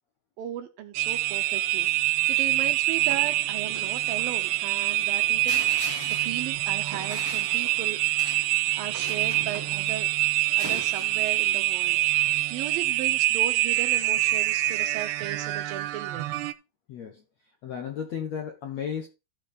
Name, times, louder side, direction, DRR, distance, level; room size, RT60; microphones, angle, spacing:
voice 1, 0.4-8.0 8.4-10.1 10.6-16.3, right 11 dB, 75° right, 2.3 m, -37 dB
sound 1, 0.9-16.5, right 17 dB, 90° right, 2.8 m, -25 dB
sound 2, 2.9-8.4 8.7-10.8, right 1 dB, 5° right, 1.3 m, -47 dB
sound 3, 5.5-9.9 10.5-11.7, left 5 dB, 50° left, 1.9 m, -43 dB
voice 2, 16.9-17.2 17.6-19.1, left 8 dB, 70° left, 1.6 m, -34 dB
14.0 x 5.3 x 4.1 m
omnidirectional pair, 4.7 m